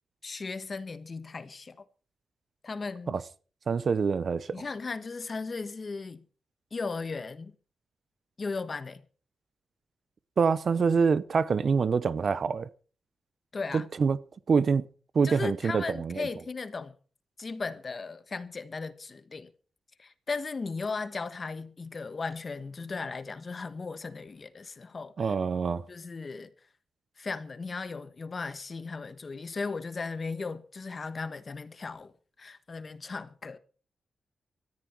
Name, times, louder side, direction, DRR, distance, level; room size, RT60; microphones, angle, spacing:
voice 1, 0.2-1.8 2.6-3.1 4.5-6.2 6.7-7.5 8.4-9.0 13.5-13.9 15.2-16.9 17.4-19.5 20.0-25.3 25.9-26.5 27.2-32.1 32.4-33.6, left 4 dB, 35° left, 1.3 m, -36 dB
voice 2, 3.7-4.6 10.4-12.7 13.7-14.2 14.5-14.8 15.1-16.3 25.2-25.8, right 5 dB, 45° right, 0.7 m, -25 dB
19.0 x 14.0 x 4.5 m
wide cardioid pair, 140°, 0 cm